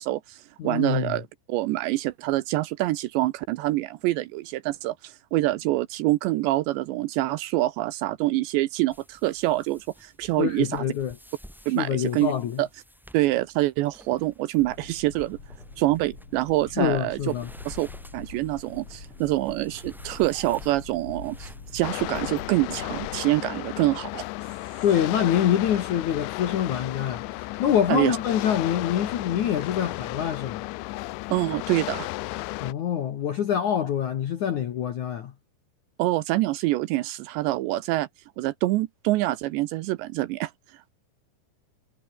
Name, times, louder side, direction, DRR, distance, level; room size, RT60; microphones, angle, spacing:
voice 1, 0.0-10.8 11.7-12.3 12.6-12.7 13.1-15.4 15.8-17.3 17.7-17.9 18.1-24.3 27.9-28.2 31.3-32.1 36.0-38.1 38.4-40.5, right 17 dB, 80° right, 2.7 m, -26 dB
voice 2, 0.6-1.2 10.4-11.2 11.8-12.6 16.8-17.5 24.8-30.7 32.6-35.3, left 9 dB, 65° left, 1.9 m, -25 dB
sound 1, 8.9-22.5, equal, ahead, 6.5 m, -52 dB
sound 2, 14.6-23.2, left 4 dB, 30° left, 5.2 m, -44 dB
sound 3, 21.8-32.7, left 21 dB, 85° left, 2.8 m, -34 dB
omnidirectional pair, 5.6 m